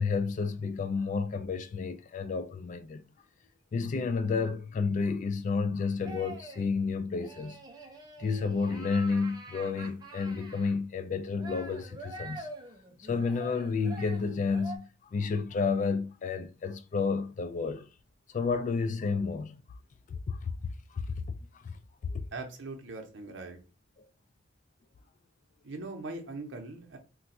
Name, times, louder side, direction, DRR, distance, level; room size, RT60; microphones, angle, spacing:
voice 1, 0.0-3.0 3.7-7.6 8.2-12.5 13.0-17.9 18.3-19.6 20.1-21.0 21.5-21.8 22.0-22.3, left 4 dB, 40° left, 0.3 m, -31 dB
sound 1, 6.1-6.7 7.2-10.7 11.4-14.8, right 2 dB, 20° right, 0.5 m, -46 dB
voice 2, 22.3-23.6 25.6-27.0, right 3 dB, 75° right, 0.7 m, -40 dB
2.4 x 2.2 x 4.0 m
head